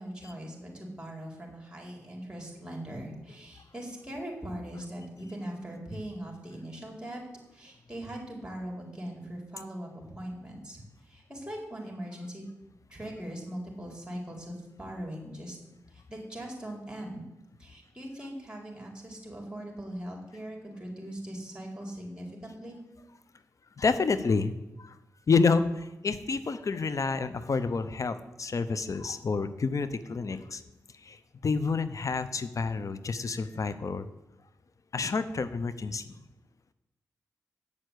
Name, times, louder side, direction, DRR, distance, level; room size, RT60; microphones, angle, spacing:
voice 1, 0.0-7.2 7.5-12.4 12.9-15.6 16.1-17.2 17.6-22.8, right 1 dB, 15° right, 0 dB, 4.2 m, -40 dB
voice 2, 23.8-25.0 25.3-30.6 31.0-34.1 34.9-36.2, left 4 dB, 55° left, 13 dB, 0.8 m, -29 dB
8.7 x 6.7 x 8.1 m, 0.96 s
supercardioid pair, 45°, 6 cm